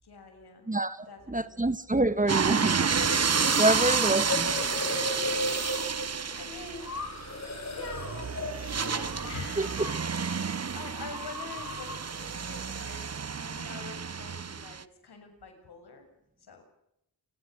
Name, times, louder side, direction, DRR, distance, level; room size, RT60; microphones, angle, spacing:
voice 1, 0.0-0.7 1.1-1.7 6.3-7.0 7.5-8.2 8.5-16.1 16.5-16.6, left 4 dB, 80° left, 7.1 m, -45 dB
voice 2, 0.7-2.8 3.6-4.5 9.6-9.9, right 2 dB, 20° right, 1.6 m, -27 dB
sound 1, 2.3-14.8, right 6 dB, 40° right, 1.0 m, -30 dB
sound 2, 2.9-10.3 10.6-12.1, left 2 dB, 45° left, 7.4 m, -37 dB
28.5 x 20.5 x 6.3 m
cardioid pair, 70°, 38 cm